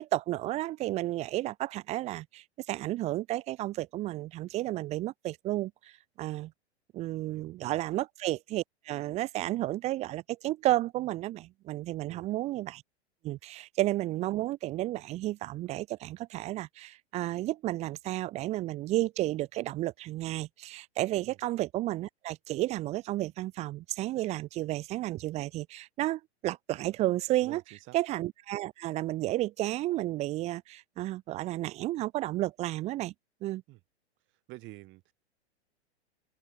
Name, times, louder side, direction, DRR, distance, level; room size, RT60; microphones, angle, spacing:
voice 1, 0.0-5.9 6.2-6.5 6.9-12.8 13.2-27.6 27.9-33.1 33.4-33.6, right 16 dB, 20° right, 0.5 m, -32 dB
voice 2, 7.2-7.8 12.0-12.3 21.2-21.4 27.4-28.0 33.7-33.8 34.3-35.1, right 20 dB, 35° right, 4.8 m, -49 dB
open air
figure-of-eight pair, 105°, 34 cm